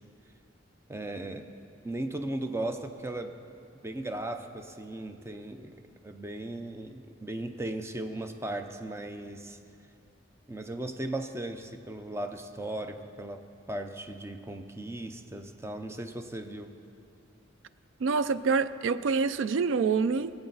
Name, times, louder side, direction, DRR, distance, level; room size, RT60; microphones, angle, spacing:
voice 1, 0.9-1.5 1.8-3.3 3.8-5.7 6.0-9.6 10.5-16.7, right 1 dB, 15° right, 7 dB, 0.5 m, -37 dB
voice 2, 18.0-20.3, right 5 dB, 90° right, 15 dB, 0.4 m, -26 dB
18.0 x 8.1 x 4.0 m, 2.6 s
head